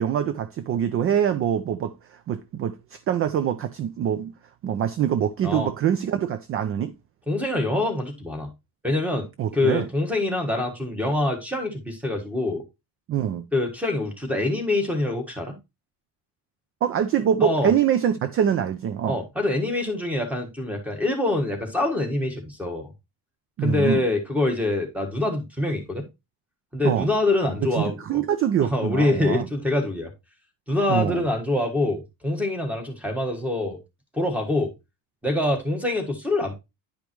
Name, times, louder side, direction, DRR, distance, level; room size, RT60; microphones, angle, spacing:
voice 1, 0.0-4.3 4.6-6.9 9.4-9.9 13.1-13.4 16.8-19.2 23.6-24.0 26.8-27.1 27.8-29.5 30.9-31.3, right 9 dB, 35° right, 0.4 m, -24 dB
voice 2, 7.3-8.5 8.8-12.6 13.5-15.6 17.4-17.7 19.1-22.9 23.6-26.1 26.7-28.2 28.7-30.1 30.7-33.8 34.1-34.7 35.2-36.5, left 2 dB, 5° right, 1.5 m, -25 dB
10.0 x 5.2 x 3.0 m
cardioid pair, 165°, 37 cm